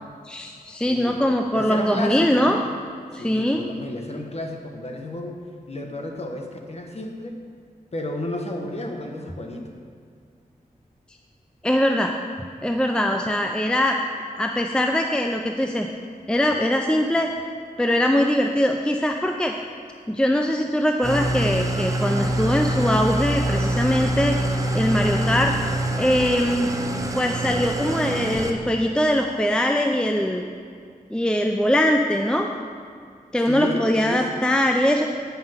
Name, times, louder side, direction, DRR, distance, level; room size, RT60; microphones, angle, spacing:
voice 1, 0.2-2.6 3.1-3.7 11.6-12.1 12.6-14.0 14.4-15.9 16.3-17.3 17.8-19.5 20.1-24.4 24.7-25.5 26.0-26.7 27.2-30.4 31.1-32.5 33.3-35.1, left 1 dB, 5° left, 3 dB, 0.5 m, -22 dB
voice 2, 0.8-1.2 1.5-2.6 3.1-5.4 5.7-7.4 7.9-9.7 33.5-34.5, left 1 dB, 45° left, 2 dB, 1.2 m, -32 dB
Engine starting / Idling, 21.0-28.5, right 1 dB, 20° right, 0.9 m, -25 dB
9.1 x 5.7 x 5.8 m, 2.2 s
cardioid pair, 60°, 15 cm